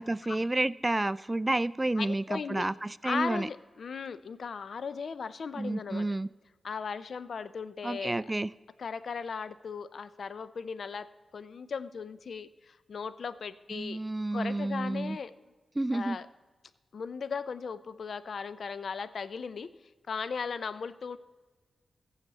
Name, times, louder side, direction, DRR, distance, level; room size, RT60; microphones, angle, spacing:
voice 1, 0.0-3.5 5.6-6.3 7.8-8.5 13.7-15.2 15.8-16.2, right 2 dB, 25° right, 17 dB, 0.4 m, -30 dB
voice 2, 2.0-2.7 3.0-6.1 6.6-8.2 8.8-11.1 11.3-14.0 14.3-15.3 15.9-16.3 16.9-19.7 20.1-21.2, left 5 dB, 70° left, 15 dB, 0.5 m, -37 dB
15.0 x 7.3 x 4.1 m, 1.3 s
cardioid pair, 55°, 0 cm